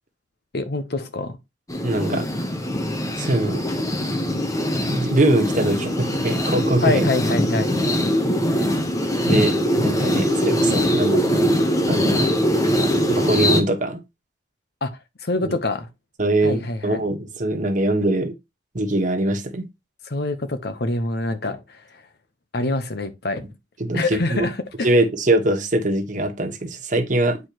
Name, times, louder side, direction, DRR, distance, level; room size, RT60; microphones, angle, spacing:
voice 1, 0.5-1.4 6.8-7.7 14.8-15.9 16.4-17.0 20.1-21.8 22.5-23.5 23.9-24.9, left 2 dB, 65° left, 0.9 m, -25 dB
sound 1, 1.7-13.6, equal, 20° left, 0.9 m, -22 dB
voice 2, 1.8-2.3 3.2-3.6 4.9-7.1 8.6-8.7 9.3-11.4 11.9-12.3 13.1-14.0 15.4-15.5 16.2-18.3 18.7-19.7 23.8-24.5 24.8-27.4, right 1 dB, 45° right, 1.2 m, -22 dB
8.5 x 4.6 x 3.0 m
head